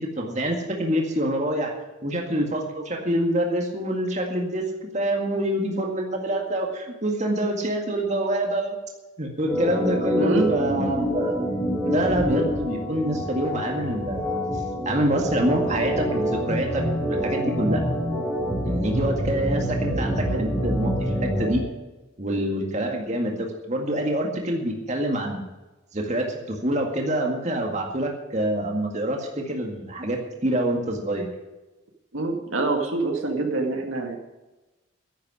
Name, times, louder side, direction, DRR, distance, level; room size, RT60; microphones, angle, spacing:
voice 1, 0.2-1.7 2.0-4.6 4.9-8.7 9.2-11.4 11.8-14.4 14.9-17.8 18.7-21.6 22.2-25.4 25.9-31.3, right 1 dB, 35° right, 1 dB, 2.0 m, -26 dB
Organ, 9.4-21.6, equal, 10° right, 3.6 m, -26 dB
voice 2, 10.2-10.6 19.9-20.4 22.3-22.4 32.1-34.2, right 2 dB, 90° right, 3 dB, 2.2 m, -26 dB
10.5 x 8.6 x 9.7 m, 1.1 s
head